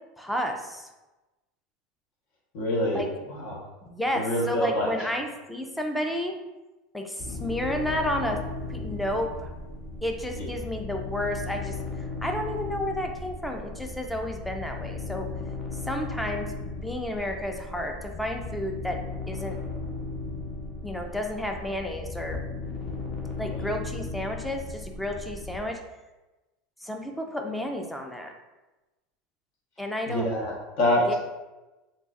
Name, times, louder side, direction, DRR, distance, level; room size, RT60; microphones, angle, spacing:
voice 1, 0.2-0.9 2.9-3.1 3.8-6.3 6.9-8.4 8.7-9.5 10.0-11.8 12.2-15.3 15.9-19.0 19.3-19.6 20.8-22.4 23.4-25.8 26.8-28.3 29.8-30.3 31.1-31.2, left 1 dB, 5° left, 3 dB, 0.4 m, -31 dB
voice 2, 2.5-3.6 4.1-4.9 10.3-10.5 23.4-23.7 30.1-31.2, left 1 dB, 65° left, -2 dB, 1.1 m, -26 dB
sound 1, 7.2-25.6, left 3 dB, 30° left, 0.8 m, -36 dB
3.8 x 3.1 x 2.4 m, 1.1 s
supercardioid pair, 135°, 0 cm